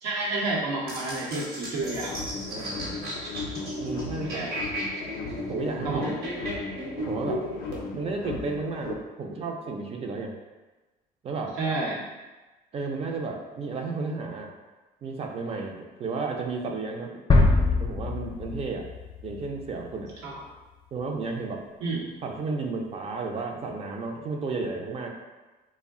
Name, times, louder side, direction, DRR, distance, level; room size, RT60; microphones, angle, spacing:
voice 1, 0.0-2.2 4.3-4.5 5.8-6.1 11.6-12.0 20.2-20.3 21.8-22.0, right 2 dB, 90° right, -5 dB, 0.9 m, -29 dB
sound 1, 0.9-7.8, right 1 dB, 60° right, 1.0 m, -35 dB
sound 2, 1.8-9.0, left 4 dB, 85° left, 0.4 m, -37 dB
voice 2, 2.5-3.0 3.8-4.5 5.5-6.1 7.1-7.4 7.9-10.3 11.2-11.6 12.7-14.5 15.0-17.1 17.8-18.9 19.2-20.1 20.9-21.6 22.2-25.1, right 4 dB, 35° right, 2 dB, 0.4 m, -33 dB
sound 3, 17.3-20.1, left 2 dB, 25° left, 0.4 m, -23 dB
2.3 x 2.1 x 3.5 m, 1.2 s
cardioid pair, 110°, 17 cm